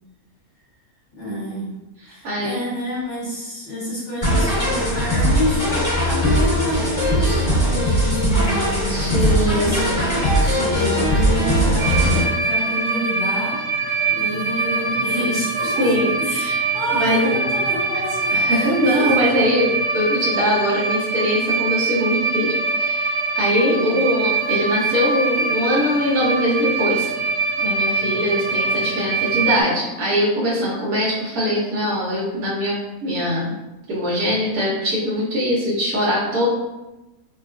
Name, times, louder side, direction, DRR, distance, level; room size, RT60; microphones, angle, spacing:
voice 1, 1.1-1.7 2.0-13.6 14.1-15.9 16.2-16.3 16.7-18.4 18.8-19.1 23.6-24.0 29.3-29.7, equal, 55° left, -9 dB, 1.5 m, -28 dB
voice 2, 2.2-2.6 7.2-7.4 8.9-10.0 10.4-11.0 15.8-16.6 17.0-17.3 18.3-27.1 27.6-33.5 33.9-36.5, equal, 90° right, -6 dB, 1.3 m, -22 dB
sound 1, 4.2-12.2, equal, 25° left, 1.5 m, -19 dB
sound 2, 11.8-29.6, right 4 dB, 55° right, 0.9 m, -23 dB
3.5 x 2.3 x 2.4 m, 1.0 s
omnidirectional pair, 1.5 m